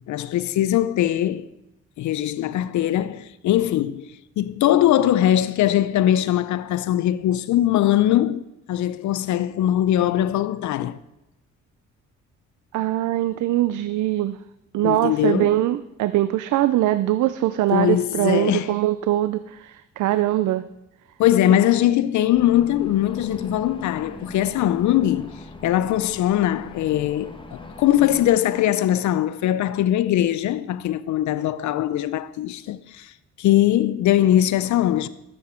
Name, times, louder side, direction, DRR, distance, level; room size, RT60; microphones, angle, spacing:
voice 1, 0.0-1.5 2.0-11.0 14.8-15.6 17.7-18.8 21.2-35.1, left 12 dB, 75° left, 0.5 m, -21 dB
voice 2, 12.7-14.4 14.7-20.7, right 14 dB, 75° right, 0.5 m, -22 dB
sound 1, 22.3-28.3, left 2 dB, 15° left, 1.4 m, -41 dB
13.5 x 7.8 x 4.4 m
cardioid pair, 90°, 30 cm